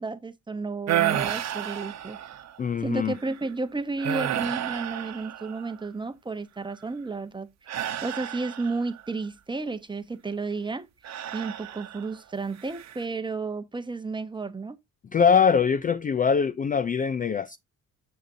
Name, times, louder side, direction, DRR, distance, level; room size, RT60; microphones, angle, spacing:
voice 1, 0.0-2.2 2.8-7.5 8.0-10.8 11.3-14.8, right 3 dB, 15° right, 0.9 m, -32 dB
sound 1, 0.9-2.6 3.1-3.4 4.0-5.9 7.7-9.0 11.0-12.2 12.6-13.0, right 11 dB, 60° right, 0.9 m, -31 dB
voice 2, 2.6-3.1 15.1-17.6, left 6 dB, 30° left, 0.4 m, -22 dB
6.8 x 6.5 x 2.6 m
cardioid pair, 90°, 30 cm